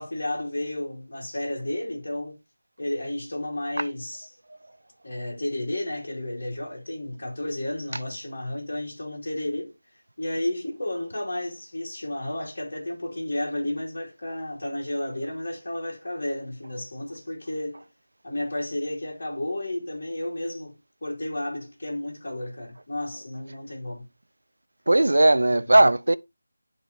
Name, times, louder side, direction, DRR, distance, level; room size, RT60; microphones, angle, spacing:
voice 1, 0.0-2.3 2.8-4.3 5.0-9.7 10.2-17.9 18.2-24.1, left 1 dB, 50° left, 2.7 m, -32 dB
voice 2, 24.9-26.1, right 2 dB, 90° right, 0.5 m, -18 dB
11.5 x 3.8 x 2.8 m
figure-of-eight pair, 175°, 0 cm